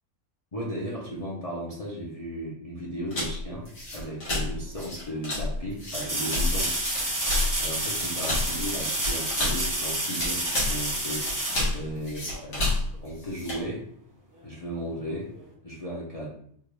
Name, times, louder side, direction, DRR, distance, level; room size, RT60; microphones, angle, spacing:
voice 1, 0.5-6.7 7.6-13.9 14.4-15.3 15.6-16.3, equal, 35° left, -6 dB, 0.7 m, -35 dB
sound 1, 3.1-13.7, left 2 dB, 85° left, 2.0 m, -31 dB
sound 2, 5.9-12.5 15.4-15.5, right 1 dB, 20° right, 0.6 m, -29 dB
4.5 x 2.5 x 3.1 m, 0.65 s
omnidirectional pair, 1.4 m